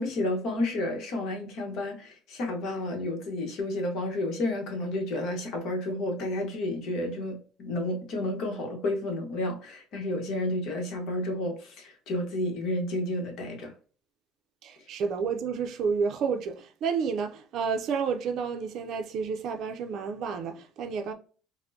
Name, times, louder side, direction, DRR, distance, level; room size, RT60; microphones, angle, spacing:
voice 1, 0.0-13.7, left 1 dB, 55° left, 1.0 m, -31 dB
voice 2, 14.6-21.1, right 5 dB, 50° right, 0.5 m, -30 dB
4.3 x 2.1 x 2.6 m
cardioid pair, 150°, 0 cm